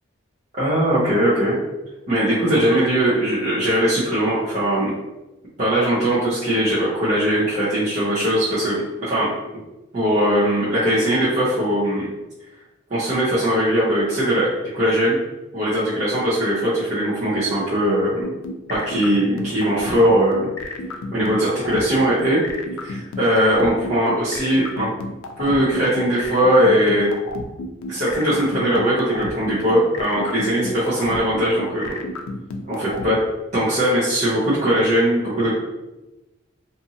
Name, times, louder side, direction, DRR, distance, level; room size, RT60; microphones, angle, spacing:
voice 1, 0.5-1.6 2.1-4.9 5.6-9.3 9.9-12.1 12.9-15.2 15.5-18.3 18.7-20.5 21.1-22.4 22.8-24.9 25.4-27.1 27.9-32.0 32.7-33.2 33.5-35.5, equal, 35° right, -11 dB, 0.7 m, -20 dB
sound 1, 18.2-33.1, left 3 dB, 90° left, 0.4 m, -31 dB
2.6 x 2.5 x 2.7 m, 1.0 s
head